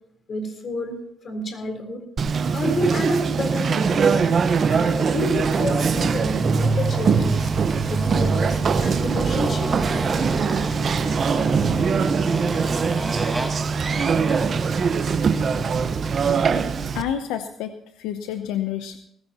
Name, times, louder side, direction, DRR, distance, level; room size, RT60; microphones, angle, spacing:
voice 1, 0.3-1.0 1.2-2.0 2.5-4.2 4.7-7.5 7.9-9.7 15.7-15.8, left 1 dB, 50° left, 5 dB, 3.8 m, -30 dB
Conversation, 2.2-17.0, right 5 dB, 50° right, 1.1 m, -22 dB
Motorcycle, 3.9-16.6, right 3 dB, 10° right, 2.0 m, -30 dB
voice 2, 16.9-19.0, left 10 dB, 90° left, 8 dB, 0.8 m, -29 dB
19.0 x 15.5 x 3.0 m, 0.72 s
supercardioid pair, 70°, 0 cm